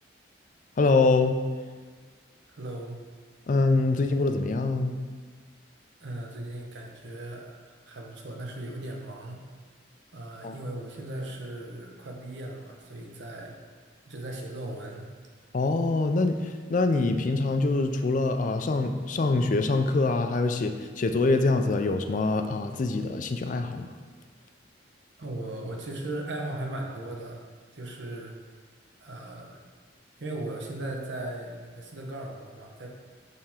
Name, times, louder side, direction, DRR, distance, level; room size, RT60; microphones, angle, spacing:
voice 1, 0.8-1.4 3.5-5.0 10.4-10.5 15.5-23.9, left 3 dB, 40° left, 7 dB, 0.4 m, -24 dB
voice 2, 2.5-3.0 6.0-9.4 10.1-13.5 14.0-15.1 25.2-27.4 27.7-28.4 29.0-29.6 30.2-32.9, right 1 dB, 70° right, 0 dB, 0.9 m, -37 dB
6.7 x 3.5 x 4.3 m, 1.5 s
head